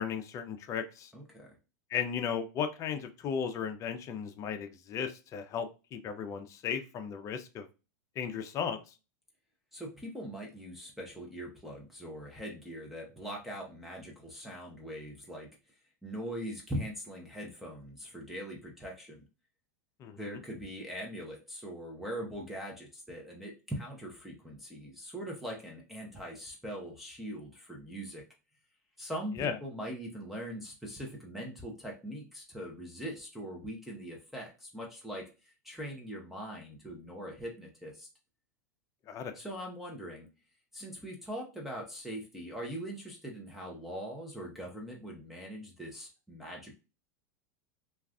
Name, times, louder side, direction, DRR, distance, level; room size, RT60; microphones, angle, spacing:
voice 1, 0.0-1.1 1.9-7.7 8.2-8.9 20.0-20.3 29.4-29.6 39.1-39.4, left 7 dB, 35° left, 8 dB, 0.5 m, -35 dB
voice 2, 1.1-1.5 9.7-15.5 16.0-19.2 20.2-28.2 29.0-38.1 39.3-40.3 40.7-46.8, equal, ahead, -1 dB, 0.7 m, -41 dB
2.4 x 2.3 x 3.5 m, 0.31 s
hypercardioid pair, 115°, 9 cm